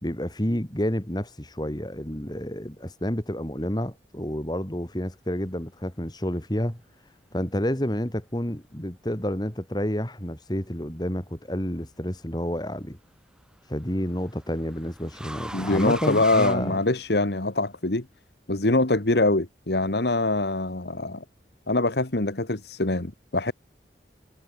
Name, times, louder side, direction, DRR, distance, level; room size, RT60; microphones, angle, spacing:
voice 1, 0.0-6.8 7.3-13.0 13.7-16.8, equal, 25° left, 2.6 m, -29 dB
sound 1, 11.5-12.0 13.4-17.4, right 1 dB, 5° right, 7.3 m, -41 dB
voice 2, 15.5-18.0 18.5-21.2 21.7-23.5, left 2 dB, 70° left, 1.7 m, -24 dB
head